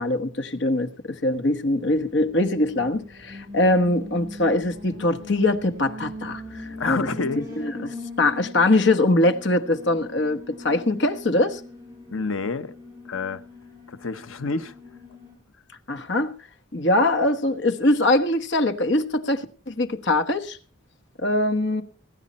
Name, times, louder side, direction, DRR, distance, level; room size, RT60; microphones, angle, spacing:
voice 1, 0.0-7.1 7.6-11.6 15.9-16.3 16.7-20.6 21.2-21.8, left 2 dB, 60° left, 1.3 m, -22 dB
Alarm, 1.9-15.3, left 1 dB, 15° right, 7.6 m, -41 dB
voice 2, 6.8-7.5 12.1-12.7 13.0-13.4 13.9-14.7, left 4 dB, 80° left, 1.0 m, -28 dB
19.5 x 9.9 x 4.3 m
head